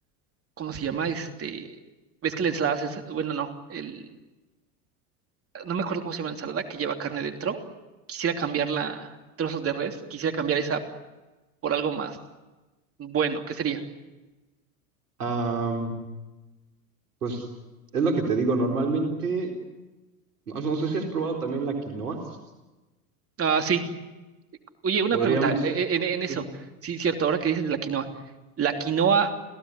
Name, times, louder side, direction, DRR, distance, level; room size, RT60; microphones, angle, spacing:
voice 1, 0.6-1.7 2.2-4.1 5.5-7.6 8.1-10.8 11.6-12.2 13.0-13.8 23.4-23.8 24.8-26.4 26.8-28.1 28.6-29.3, right 6 dB, 30° right, 5 dB, 3.1 m, -27 dB
voice 2, 15.2-15.9 17.2-17.4 17.9-19.5 20.5-22.2 25.1-25.6 26.3-26.4, right 4 dB, 85° right, 3 dB, 4.3 m, -26 dB
27.5 x 17.0 x 9.8 m, 1.1 s
hypercardioid pair, 90°, 45 cm